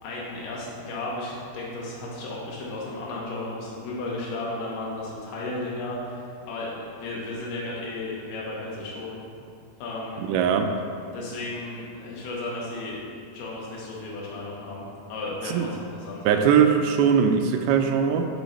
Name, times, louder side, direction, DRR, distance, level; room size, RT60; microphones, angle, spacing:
voice 1, 0.0-9.2 9.8-10.2 11.1-13.0 13.3-16.3, left 2 dB, 90° left, -4 dB, 3.4 m, -34 dB
voice 2, 10.3-10.7 15.5-15.7 16.3-18.3, right 7 dB, 85° right, 5 dB, 2.4 m, -20 dB
10.5 x 5.6 x 3.1 m, 2.4 s
omnidirectional pair, 4.5 m